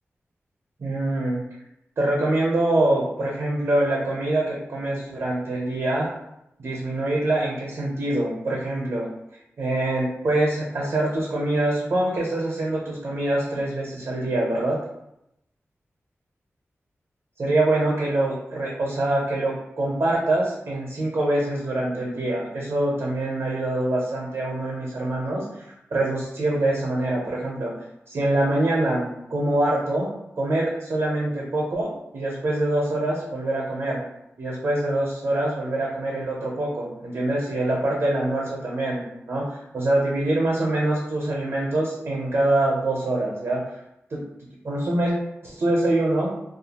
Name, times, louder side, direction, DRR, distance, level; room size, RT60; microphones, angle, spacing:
voice 1, 0.8-1.4 2.0-6.1 6.6-9.1 9.6-14.8 17.4-27.7 28.1-30.1 30.4-34.0 34.4-39.0 39.3-43.6 44.1-44.2 44.6-45.1 45.4-46.3, right 1 dB, 75° right, -3 dB, 0.6 m, -24 dB
2.4 x 2.3 x 2.8 m, 0.83 s
wide cardioid pair, 95°, 5 cm